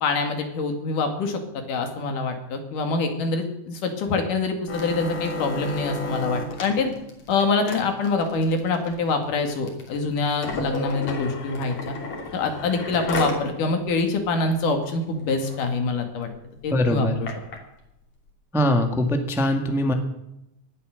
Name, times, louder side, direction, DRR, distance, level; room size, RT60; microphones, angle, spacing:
voice 1, 0.0-6.9 7.3-11.9 12.3-16.3 16.6-17.3, left 3 dB, 85° left, 5 dB, 3.7 m, -25 dB
sound 1, 4.7-13.5 13.9-14.0 14.3-14.6 15.0-15.1 15.4-15.7 16.3-17.6 18.3-18.4, left 3 dB, 60° left, 4.1 m, -32 dB
voice 2, 16.7-17.1 18.5-19.9, left 1 dB, ahead, 5 dB, 0.8 m, -22 dB
18.0 x 11.5 x 6.4 m, 0.85 s
omnidirectional pair, 3.6 m